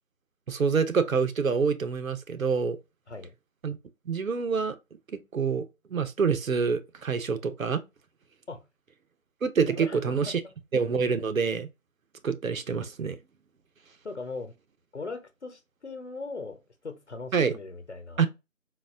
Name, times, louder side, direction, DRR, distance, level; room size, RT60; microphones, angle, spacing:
voice 1, 0.5-2.8 3.6-3.8 4.1-4.8 5.1-5.7 5.9-7.8 9.4-10.4 10.7-11.7 12.2-13.2 17.3-17.5 18.2-18.3, right 5 dB, 85° right, 0.7 m, -26 dB
voice 2, 9.6-10.4 14.0-14.5 14.9-18.3, left 3 dB, 55° left, 0.9 m, -39 dB
4.0 x 2.4 x 2.5 m
figure-of-eight pair, 175°, 40 cm